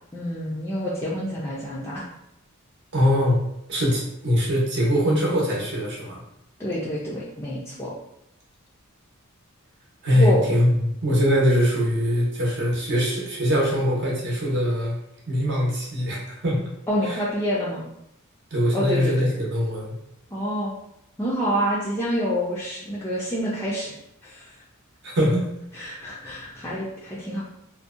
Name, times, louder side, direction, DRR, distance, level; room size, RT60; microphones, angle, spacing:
voice 1, 0.1-2.1 6.6-7.9 10.1-10.5 16.9-17.9 18.7-19.3 20.3-20.7 21.2-24.0 24.2-24.5 25.7-27.4, equal, 10° left, -7 dB, 0.4 m, -27 dB
voice 2, 2.9-3.4 3.7-6.2 10.0-15.0 15.3-16.6 17.1-17.2 18.5-19.9 25.0-25.5 25.7-26.0, equal, 55° right, -3 dB, 0.8 m, -22 dB
2.6 x 2.1 x 2.4 m, 0.78 s
head